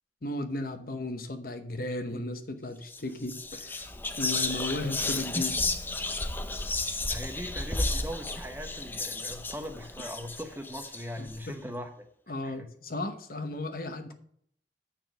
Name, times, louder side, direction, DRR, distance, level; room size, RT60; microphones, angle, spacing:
voice 1, 0.2-3.9 4.2-5.6 7.0-7.1 11.2-11.5 12.3-14.1, left 2 dB, 55° left, 7 dB, 1.0 m, -35 dB
Whispering, 2.8-3.0 3.3-11.4, left 2 dB, 10° left, 0.5 m, -33 dB
voice 2, 7.1-12.1 12.4-12.7, equal, 10° right, 5 dB, 0.8 m, -40 dB
7.0 x 6.1 x 6.1 m, 0.66 s
head